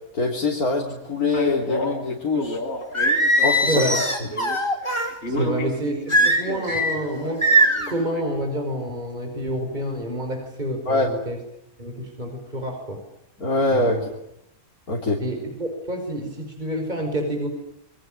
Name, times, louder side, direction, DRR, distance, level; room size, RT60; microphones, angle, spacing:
voice 1, 0.1-2.6 3.4-3.8 5.3-5.5 10.9-11.1 13.4-14.1 14.9-15.2, left 2 dB, 85° left, -1 dB, 4.0 m, -23 dB
Male speech man speaking, 1.3-4.6 4.8-8.2, left 1 dB, 50° left, 4.7 m, -31 dB
Singing, 2.9-5.1 6.1-6.9 7.4-7.9, right 1 dB, 20° left, 5.4 m, -20 dB
voice 2, 3.7-4.0 5.3-7.5 7.9-11.4 11.8-13.0 13.7-14.0 15.2-17.5, equal, 30° right, 4 dB, 5.6 m, -28 dB
28.5 x 23.0 x 8.9 m, 0.82 s
omnidirectional pair, 1.5 m